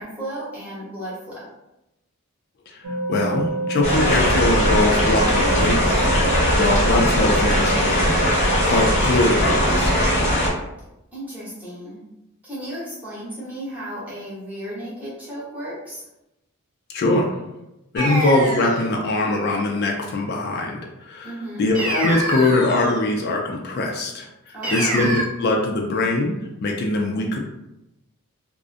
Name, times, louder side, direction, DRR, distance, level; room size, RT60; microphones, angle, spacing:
voice 1, 0.0-1.4 11.1-12.0 12.4-16.0 21.2-21.6 24.5-25.0, right 1 dB, 5° right, -9 dB, 0.9 m, -34 dB
sound 1, 2.8-10.2, right 2 dB, 80° right, 0.4 m, -29 dB
voice 2, 3.1-8.3 8.7-10.1 16.9-17.4 17.9-21.3 21.6-27.4, left 2 dB, 45° left, 1 dB, 0.3 m, -22 dB
sound 2, 3.8-10.5, equal, 30° left, 0.7 m, -19 dB
sound 3, 18.0-18.9 21.7-23.0 24.6-25.2, right 1 dB, 35° right, 0.7 m, -26 dB
2.4 x 2.0 x 2.4 m, 0.91 s
head